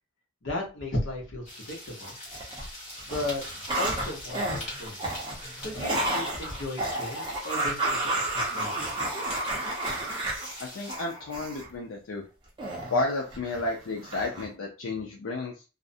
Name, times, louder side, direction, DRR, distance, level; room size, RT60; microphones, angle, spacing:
voice 1, 0.4-2.2 3.0-3.4 3.8-5.0 5.6-8.9, left 2 dB, 70° left, -1 dB, 0.8 m, -35 dB
sound 1, 1.4-11.0, left 1 dB, 30° left, 1.1 m, -43 dB
sound 2, 2.0-2.7 3.0-11.7 12.6-13.7 14.0-14.5, right 1 dB, 25° right, 0.6 m, -31 dB
voice 2, 10.6-12.2 12.9-15.6, left 2 dB, 90° left, 0 dB, 0.4 m, -32 dB
2.4 x 2.0 x 2.5 m, 0.32 s
head